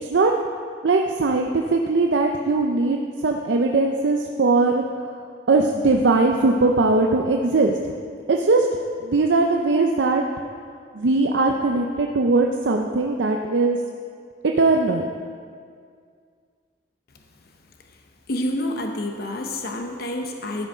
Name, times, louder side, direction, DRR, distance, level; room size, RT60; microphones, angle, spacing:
voice 1, 0.0-0.3 0.8-4.8 5.5-7.7 8.3-8.7 9.0-10.2 10.9-13.8 14.4-15.0, right 3 dB, 75° right, 2 dB, 0.6 m, -20 dB
voice 2, 18.3-20.7, left 1 dB, 60° left, 3 dB, 0.9 m, -28 dB
13.0 x 6.2 x 5.5 m, 2.1 s
head